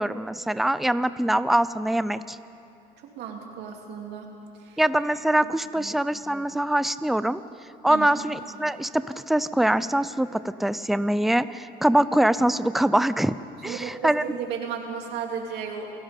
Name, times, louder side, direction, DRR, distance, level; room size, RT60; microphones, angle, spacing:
voice 1, 0.0-2.4 4.8-7.4 7.8-13.3 13.6-14.2, right 1 dB, ahead, 14 dB, 0.5 m, -23 dB
voice 2, 3.0-4.3 4.6-4.8 5.8-6.0 7.9-8.1 13.6-15.9, right 7 dB, 80° right, 2 dB, 2.8 m, -34 dB
29.0 x 17.5 x 5.3 m, 2.7 s
cardioid pair, 110°, 17 cm